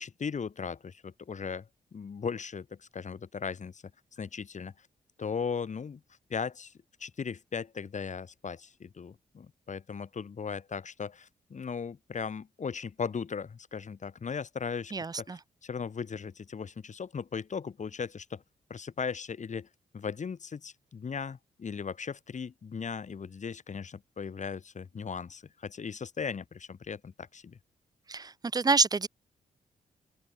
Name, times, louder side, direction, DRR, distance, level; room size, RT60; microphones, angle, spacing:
voice 1, 0.0-3.8 4.1-4.7 5.2-6.0 6.3-6.7 7.0-14.9 15.2-18.4 18.7-19.7 19.9-27.6, left 6 dB, 50° left, 4.1 m, -37 dB
voice 2, 14.9-15.4 28.1-29.1, right 4 dB, 25° right, 0.6 m, -27 dB
open air
cardioid pair, 70°, 16 cm